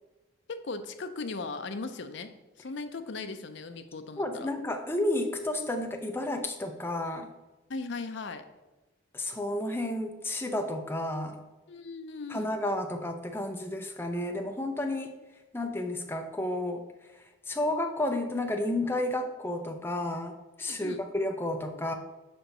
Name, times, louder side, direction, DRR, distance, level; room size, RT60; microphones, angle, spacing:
voice 1, 0.5-4.5 7.7-8.5 11.7-12.5 20.6-21.0, left 3 dB, 60° left, 8 dB, 0.5 m, -38 dB
voice 2, 4.2-7.3 9.1-11.4 12.3-15.1 15.5-16.8 17.5-21.9, left 1 dB, 10° left, 4 dB, 0.5 m, -31 dB
5.5 x 4.4 x 5.2 m, 1.1 s
head